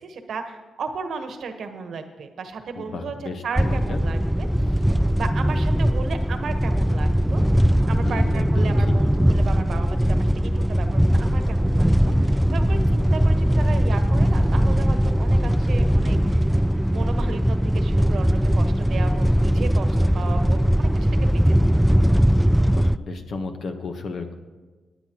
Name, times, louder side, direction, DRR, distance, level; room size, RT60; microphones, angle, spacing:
voice 1, 0.0-3.1 3.4-4.7 5.2-7.4 7.9-16.5 16.9-20.9 21.2-21.6, right 5 dB, 70° right, 7 dB, 1.1 m, -34 dB
voice 2, 2.8-4.0 7.9-8.9 22.7-24.3, left 3 dB, 70° left, 6 dB, 1.2 m, -33 dB
sound 1, 3.6-23.0, equal, 5° right, 0.3 m, -20 dB
21.5 x 9.1 x 3.0 m, 1.3 s
cardioid pair, 65°, 0 cm